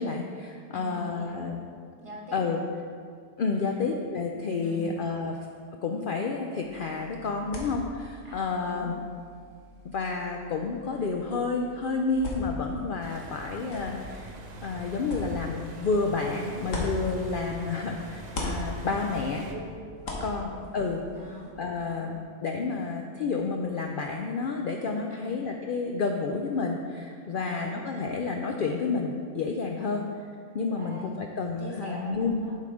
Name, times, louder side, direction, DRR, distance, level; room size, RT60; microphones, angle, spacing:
voice 1, 0.0-1.6 2.3-2.6 3.4-5.4 5.8-8.9 9.8-19.4 20.2-21.0 21.6-30.0 30.5-32.4, left 4 dB, 60° left, 2 dB, 0.6 m, -30 dB
voice 2, 0.7-1.5 2.0-2.6 3.5-3.9 4.6-4.9 8.2-8.9 17.1-17.2 19.3-19.8 20.2-20.5 21.1-21.5 21.8-22.1 25.1-25.3 27.3-27.8 29.7-30.1 30.7-31.2 31.6-32.6, equal, 25° right, -3 dB, 1.2 m, -43 dB
sound 1, 6.6-17.8 18.1-21.5, left 2 dB, 90° left, 1.6 m, -41 dB
sound 2, 13.0-19.5, right 2 dB, 45° right, 0.6 m, -43 dB
7.5 x 5.6 x 4.9 m, 2.2 s
omnidirectional pair, 1.3 m